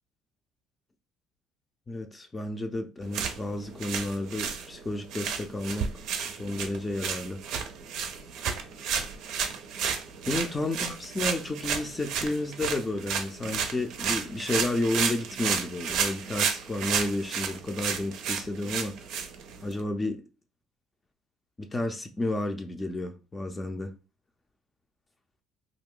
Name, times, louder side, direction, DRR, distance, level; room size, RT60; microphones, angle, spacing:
voice 1, 1.9-5.9 6.3-7.4 10.3-19.0 19.6-20.2 21.6-23.9, left 2 dB, 25° left, 0.5 m, -31 dB
sound 1, 3.0-19.8, right 7 dB, 70° right, 0.5 m, -32 dB
2.4 x 2.2 x 3.7 m
supercardioid pair, 70°, 0 cm